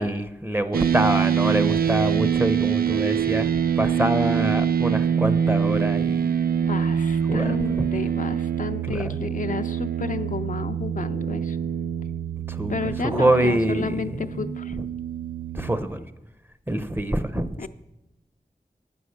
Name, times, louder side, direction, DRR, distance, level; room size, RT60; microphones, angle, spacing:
voice 1, 0.0-3.5 3.8-6.3 7.3-7.9 8.8-9.2 12.5-14.9 15.5-16.0 16.7-17.7, right 1 dB, 15° right, 12 dB, 0.6 m, -25 dB
sound 1, 0.7-15.8, right 8 dB, 75° right, 0.4 m, -25 dB
voice 2, 6.6-11.6 12.7-14.8 17.6-17.7, left 5 dB, 60° left, 9 dB, 0.4 m, -32 dB
9.0 x 7.0 x 6.5 m, 0.96 s
wide cardioid pair, 55°, 15 cm